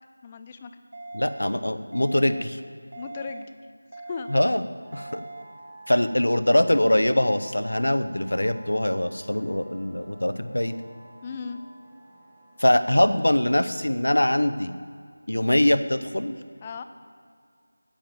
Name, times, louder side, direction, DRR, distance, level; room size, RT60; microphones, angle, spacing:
voice 1, 0.2-0.7 3.0-3.6 3.9-4.3 5.9-6.0 11.2-11.6 16.6-16.8, left 5 dB, 20° left, 9 dB, 0.4 m, -37 dB
sound 1, 0.9-1.4 1.9-2.4 2.9-3.4 3.9-4.4 4.9-5.4, right 2 dB, 65° right, 1.3 m, -40 dB
voice 2, 1.1-2.6 4.3-4.6 4.9-5.2 5.9-10.7 12.6-14.7 15.3-16.3, left 1 dB, 75° left, 11 dB, 0.8 m, -23 dB
sound 2, 4.8-13.2, right 1 dB, 10° right, 1.5 m, -49 dB
10.0 x 8.8 x 7.6 m, 2.1 s
figure-of-eight pair, 170°, 0 cm